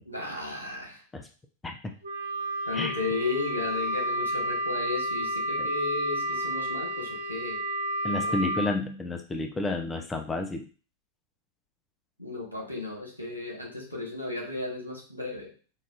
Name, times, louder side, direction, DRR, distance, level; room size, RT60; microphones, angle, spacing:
voice 1, 0.0-1.0 2.6-7.6 8.3-8.4 12.2-15.5, left 3 dB, 90° left, -2 dB, 1.3 m, -34 dB
Wind instrument woodwind instrument, 2.0-8.7, equal, 70° right, 0.7 m, -31 dB
voice 2, 8.0-10.7, left 2 dB, 15° left, 4 dB, 0.4 m, -31 dB
5.4 x 2.4 x 2.4 m, 0.37 s
figure-of-eight pair, 90°, 0 cm